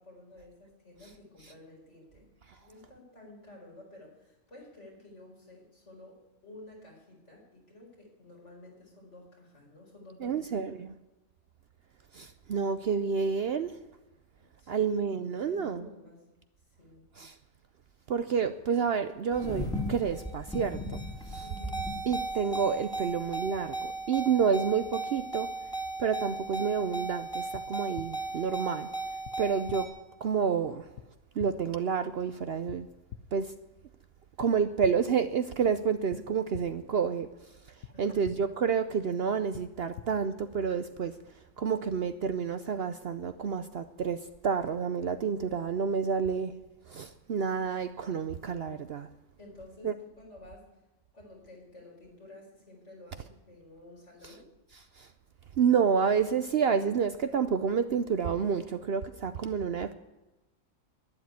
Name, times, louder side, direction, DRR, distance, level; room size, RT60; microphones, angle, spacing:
voice 1, 0.0-2.3 2.6-10.4 14.4-14.9 15.2-16.2 16.7-17.0 21.4-21.8 37.9-38.2 49.4-50.8 51.1-54.5, left 2 dB, 60° left, 5.0 m, -52 dB
voice 2, 10.2-10.9 12.1-13.8 14.7-15.9 17.2-17.4 18.1-21.4 22.1-25.5 26.0-28.9 29.4-29.9 30.2-30.9 31.4-32.9 33.3-33.5 34.4-37.3 38.0-41.2 41.6-46.5 46.9-49.1 49.8-49.9 55.0-55.1 55.6-59.9, right 6 dB, 60° right, 0.8 m, -29 dB
sound 1, 19.3-29.9, right 2 dB, 5° left, 2.3 m, -36 dB
sound 2, 27.5-27.6 28.0-28.1 29.2-29.3 29.7-29.8 31.0-31.1 31.4-31.5 32.7-32.8 33.1-33.2 34.4-34.5 34.8-34.9 36.1-36.2 36.5-36.6 37.8-37.9 38.2-38.3 39.5-39.6 40.0-40.1, left 11 dB, 90° left, 1.2 m, -42 dB
12.0 x 11.0 x 9.5 m
omnidirectional pair, 1.4 m